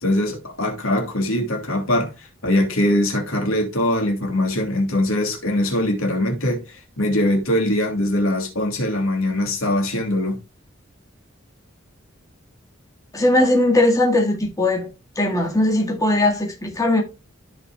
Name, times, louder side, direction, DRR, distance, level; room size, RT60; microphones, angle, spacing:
voice 1, 0.0-10.4, left 1 dB, 85° left, 2.6 m, -22 dB
voice 2, 13.1-14.9 15.2-17.0, left 1 dB, 15° left, 1.8 m, -19 dB
13.5 x 5.7 x 2.3 m
head